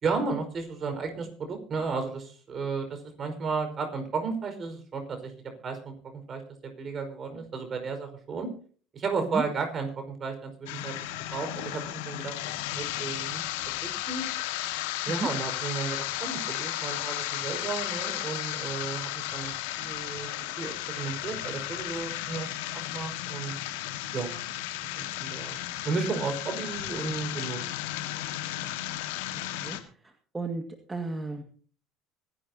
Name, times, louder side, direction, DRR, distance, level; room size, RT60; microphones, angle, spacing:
voice 1, 0.0-5.3 5.6-8.5 8.9-10.9 11.3-13.4 13.8-14.3 15.1-20.3 20.6-23.5 24.1-24.5 25.0-25.6 25.8-27.6 28.1-28.3, right 4 dB, 40° right, 6 dB, 5.1 m, -33 dB
sound 1, 10.7-29.8, left 14 dB, 80° left, 1.7 m, -34 dB
voice 2, 30.9-31.4, right 3 dB, 20° right, 5 dB, 1.9 m, -32 dB
25.0 x 11.0 x 2.9 m, 0.43 s
hypercardioid pair, 75°, 0 cm